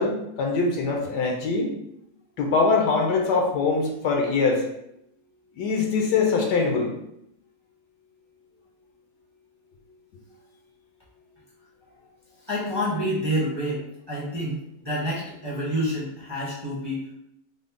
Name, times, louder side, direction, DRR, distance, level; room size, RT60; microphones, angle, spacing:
voice 1, 0.0-1.7 2.4-4.6 5.6-6.9, left 4 dB, 80° left, 1 dB, 1.2 m, -23 dB
voice 2, 12.5-17.1, equal, 20° right, -7 dB, 0.7 m, -28 dB
3.7 x 2.1 x 3.6 m, 0.79 s
omnidirectional pair, 1.8 m